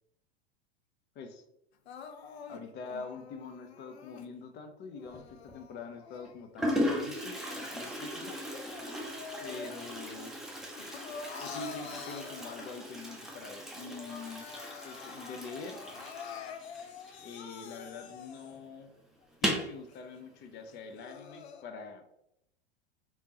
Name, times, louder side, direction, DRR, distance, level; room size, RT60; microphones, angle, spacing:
Crying sobbing, 1.9-4.3 4.9-6.7 7.1-10.1 10.4-13.0 13.5-13.6 13.8-18.7 19.2-19.3 19.9-20.0 20.7-21.6, left 6 dB, 75° left, 0.5 m, -47 dB
voice 1, 2.5-8.3 9.4-10.4 11.4-14.5 14.8-15.8 17.2-18.9 19.4-22.0, left 4 dB, 35° left, 6 dB, 0.6 m, -45 dB
Toilet flush, 5.1-5.5 6.2-6.3 6.6-17.9 18.1-18.2 18.5-18.6 19.3-19.8, equal, ahead, 0.7 m, -37 dB
3.4 x 3.0 x 2.8 m, 0.79 s
hypercardioid pair, 90°, 32 cm